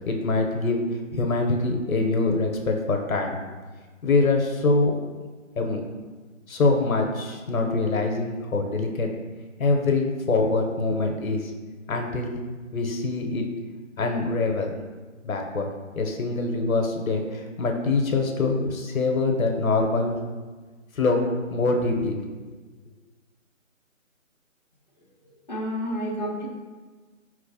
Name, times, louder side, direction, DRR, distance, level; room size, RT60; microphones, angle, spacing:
voice 1, 0.1-0.8 1.1-3.4 4.0-5.0 5.6-5.8 6.5-9.1 9.6-11.5 11.9-12.4 12.7-13.5 14.0-14.7 15.2-15.7 16.0-20.2 20.9-21.2 21.5-22.2, left 3 dB, 80° left, 2 dB, 0.8 m, -24 dB
voice 2, 25.2-26.5, equal, 35° left, -6 dB, 0.6 m, -30 dB
4.8 x 3.1 x 2.7 m, 1.4 s
hypercardioid pair, 180°, 41 cm